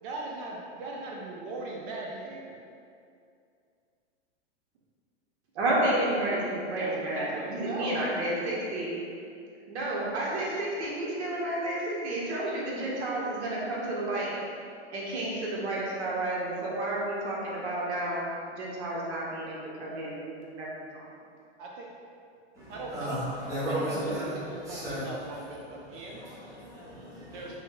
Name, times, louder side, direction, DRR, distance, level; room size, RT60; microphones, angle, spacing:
voice 1, 0.0-2.6 6.7-8.1 21.6-21.9 22.7-23.2 23.6-26.2 27.3-27.5, right 2 dB, 50° right, -2 dB, 0.4 m, -39 dB
voice 2, 5.5-8.9 9.7-14.3 14.9-18.3 18.6-20.7 20.9-21.0, right 1 dB, 75° right, -5 dB, 0.9 m, -31 dB
voice 3, 22.5-25.1 25.8-27.5, equal, 10° right, -12 dB, 0.8 m, -35 dB
3.1 x 2.2 x 3.0 m, 2.4 s
supercardioid pair, 145°, 34 cm